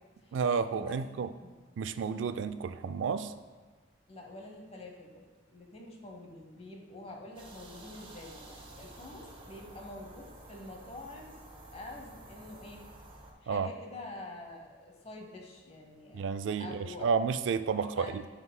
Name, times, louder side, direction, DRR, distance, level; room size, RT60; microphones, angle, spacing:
voice 1, 0.3-1.3 1.8-3.3 13.5-13.7 16.1-18.2, right 5 dB, 70° right, 11 dB, 0.3 m, -31 dB
voice 2, 4.1-11.4 11.7-12.9 13.4-17.1 17.9-18.2, left 2 dB, 35° left, 1 dB, 0.8 m, -47 dB
sound 1, 7.4-13.3, right 1 dB, 30° right, 0.7 m, -51 dB
9.6 x 4.6 x 2.2 m, 1.4 s
head